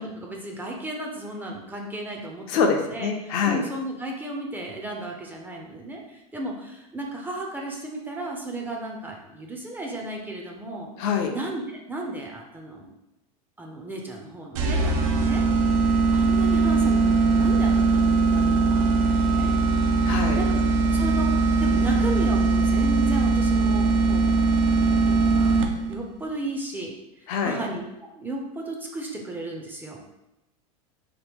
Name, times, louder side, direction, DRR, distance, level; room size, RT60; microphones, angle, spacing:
voice 1, 0.0-10.9 11.3-11.6 11.9-12.9 13.6-15.4 15.7-15.8 16.1-19.5 20.4-20.6 20.9-25.6 25.9-26.9 27.2-30.0, right 1 dB, 10° right, 0 dB, 0.4 m, -34 dB
voice 2, 2.5-3.6 11.0-11.3 20.0-20.4 27.3-27.6, left 6 dB, 60° left, 3 dB, 0.5 m, -24 dB
sound 1, 14.6-26.0, right 3 dB, 70° right, 0.5 m, -21 dB
2.9 x 2.1 x 3.5 m, 0.93 s
supercardioid pair, 115°, 18 cm